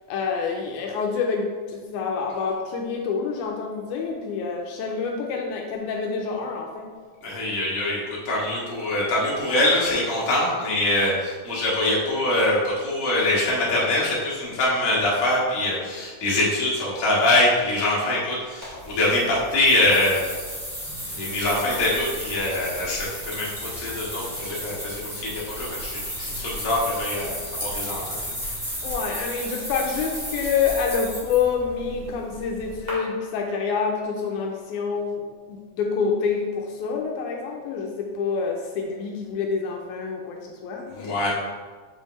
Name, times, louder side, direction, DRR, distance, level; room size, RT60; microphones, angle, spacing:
voice 1, 0.1-6.9 28.8-41.2, left 5 dB, 80° left, 1 dB, 2.0 m, -27 dB
voice 2, 7.2-20.2 21.1-27.3 27.6-28.3 40.9-41.3, left 1 dB, 35° left, -6 dB, 1.4 m, -24 dB
sound 1, 18.6-32.9, equal, 20° right, 1.2 m, -34 dB
6.7 x 5.4 x 3.1 m, 1.5 s
omnidirectional pair, 3.6 m